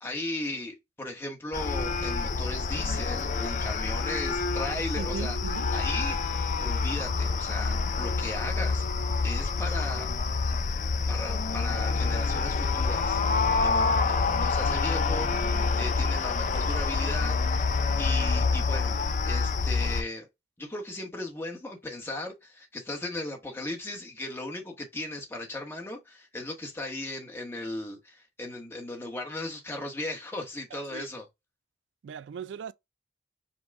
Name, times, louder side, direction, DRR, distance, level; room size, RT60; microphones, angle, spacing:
voice 1, 0.0-8.9 9.2-10.1 11.1-13.2 13.6-17.4 18.0-20.3 20.6-31.3, left 2 dB, 15° left, 1.0 m, -37 dB
sound 1, 1.5-20.0, left 4 dB, 45° left, 0.4 m, -27 dB
voice 2, 5.0-5.7 13.6-13.8 30.7-31.1 32.0-32.7, right 7 dB, 90° right, 0.3 m, -39 dB
5.3 x 2.2 x 3.5 m
head